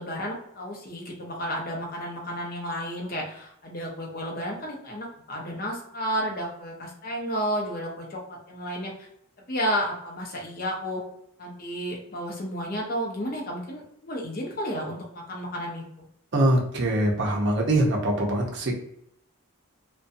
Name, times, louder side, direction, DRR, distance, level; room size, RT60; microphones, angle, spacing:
voice 1, 0.0-8.9 9.5-11.0 11.4-15.8, equal, 40° left, -1 dB, 0.6 m, -32 dB
voice 2, 16.3-18.7, right 1 dB, 55° right, 0 dB, 0.6 m, -23 dB
2.5 x 2.2 x 2.5 m, 0.74 s
head